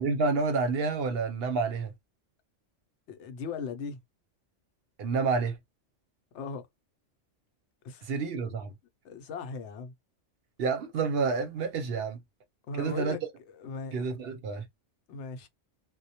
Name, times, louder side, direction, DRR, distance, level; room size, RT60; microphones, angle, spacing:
voice 1, 0.0-1.9 5.0-5.6 8.0-8.7 10.6-12.2 12.8-13.2 13.9-14.7, right 4 dB, 60° right, 0.8 m, -29 dB
voice 2, 3.1-4.0 6.3-6.7 7.8-8.1 9.0-9.9 12.7-14.0 15.1-15.5, left 5 dB, 70° left, 0.8 m, -38 dB
2.1 x 2.1 x 2.7 m
omnidirectional pair, 1.3 m